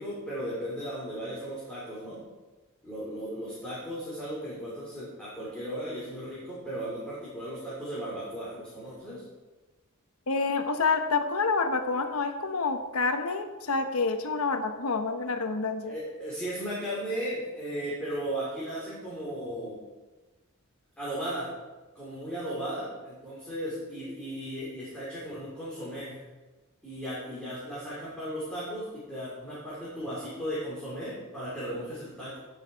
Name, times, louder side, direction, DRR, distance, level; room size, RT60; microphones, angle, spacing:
voice 1, 0.0-2.2 2.8-9.2 15.8-19.8 21.0-21.5 22.0-26.2 26.8-32.4, equal, 5° left, -9 dB, 3.7 m, -36 dB
voice 2, 10.3-15.9, left 4 dB, 70° left, 7 dB, 1.0 m, -28 dB
17.0 x 6.3 x 4.6 m, 1.2 s
head